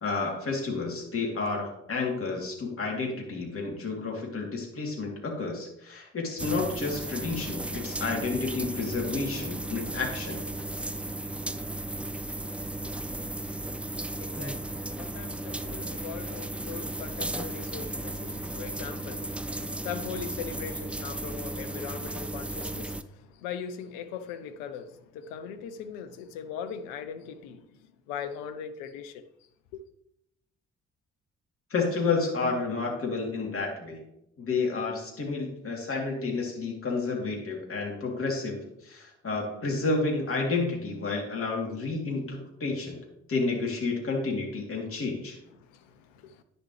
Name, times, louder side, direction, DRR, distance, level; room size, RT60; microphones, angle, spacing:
voice 1, 0.0-10.4 31.7-34.0 34.4-43.0 43.3-45.4, left 3 dB, 35° left, 3.0 m, -30 dB
sound 1, 6.4-23.0, right 1 dB, 5° right, 0.3 m, -35 dB
voice 2, 14.2-27.8 28.1-29.2 29.7-29.8 45.6-46.4, left 7 dB, 65° left, 0.7 m, -40 dB
9.9 x 7.0 x 3.2 m
figure-of-eight pair, 40°, 37 cm